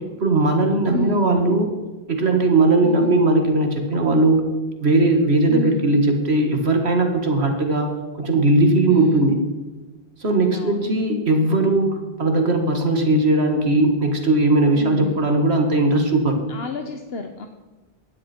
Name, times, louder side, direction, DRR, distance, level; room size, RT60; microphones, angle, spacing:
voice 1, 0.0-1.7 2.1-4.5 4.8-9.4 10.2-11.9 12.2-16.4, right 2 dB, 90° right, 4 dB, 2.2 m, -18 dB
voice 2, 0.9-1.3 2.8-3.2 5.5-5.9 8.9-9.3 10.5-10.9 14.7-15.3 16.5-17.5, left 2 dB, 70° left, 5 dB, 1.3 m, -29 dB
18.0 x 13.5 x 4.5 m, 1.2 s
omnidirectional pair, 1.1 m